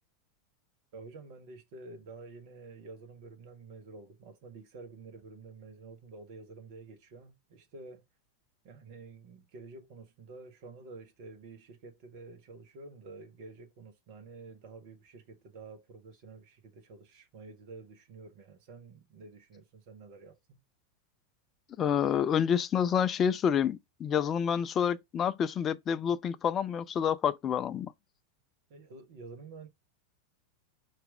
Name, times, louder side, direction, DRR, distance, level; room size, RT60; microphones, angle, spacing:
voice 1, 0.9-8.0 8.6-20.6 28.7-29.7, right 3 dB, 45° right, 0.9 m, -49 dB
voice 2, 21.8-27.9, left 8 dB, 25° left, 0.3 m, -28 dB
4.5 x 2.5 x 4.7 m
figure-of-eight pair, 90°, 0 cm